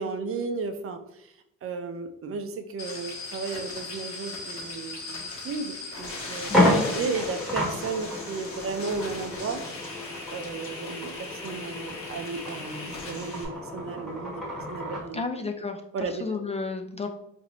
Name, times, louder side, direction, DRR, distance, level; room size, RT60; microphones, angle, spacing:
voice 1, 0.0-1.3 1.6-6.5 6.9-9.9 10.3-15.2 15.9-16.4, right 4 dB, 50° right, 8 dB, 0.5 m, -34 dB
sound 1, 2.8-13.4, left 3 dB, 50° left, 1.0 m, -38 dB
sound 2, 5.5-5.6 6.0-6.1 6.4-15.1, left 1 dB, ahead, 1.2 m, -30 dB
voice 2, 6.5-6.9 15.1-17.1, left 4 dB, 20° left, 4 dB, 0.3 m, -32 dB
4.1 x 2.6 x 2.9 m, 0.82 s
cardioid pair, 90°, 30 cm